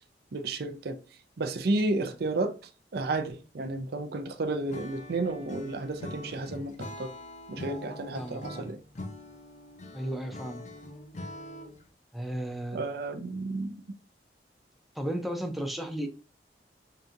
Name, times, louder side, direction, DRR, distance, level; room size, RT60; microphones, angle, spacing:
voice 1, 0.3-1.0 1.4-2.5 2.9-7.1 7.5-8.8 12.7-13.7, right 2 dB, 60° right, 0.5 m, -32 dB
Acoustic guitar / Strum, 4.7-11.9, left 1 dB, 40° left, 0.6 m, -43 dB
voice 2, 8.1-8.7 9.9-10.6 12.1-12.8 14.9-16.1, right 1 dB, ahead, 0.4 m, -34 dB
5.6 x 2.6 x 2.5 m
head